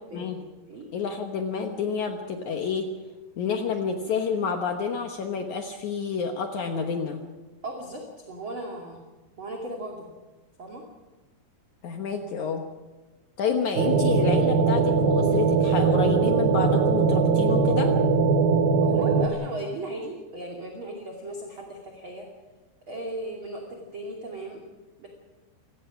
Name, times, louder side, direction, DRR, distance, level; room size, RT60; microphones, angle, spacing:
voice 1, 0.9-2.9 3.4-7.2 11.8-12.6 13.4-17.9, left 6 dB, 80° left, 4 dB, 1.7 m, -29 dB
voice 2, 7.6-9.0 9.4-10.1 10.6-10.8 18.8-22.3 22.9-24.6 25.0-25.1, right 1 dB, 35° right, 0 dB, 2.6 m, -37 dB
sound 1, 13.8-19.3, right 5 dB, 65° right, 2.6 m, -21 dB
26.0 x 18.5 x 6.0 m, 1.2 s
omnidirectional pair, 5.4 m